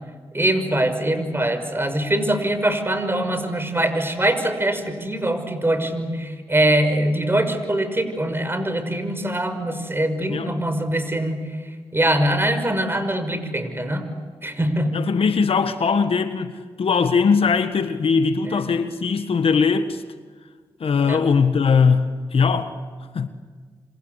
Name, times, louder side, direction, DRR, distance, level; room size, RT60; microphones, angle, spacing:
voice 1, 0.3-11.6 11.9-14.0 14.4-15.0 18.4-18.6 21.0-21.2, right 1 dB, 25° right, 5.9 m, -23 dB
voice 2, 14.9-20.0 20.8-22.7 23.1-23.3, left 5 dB, 70° left, 1.6 m, -20 dB
27.0 x 27.0 x 8.2 m
cardioid pair, 45°, 10 cm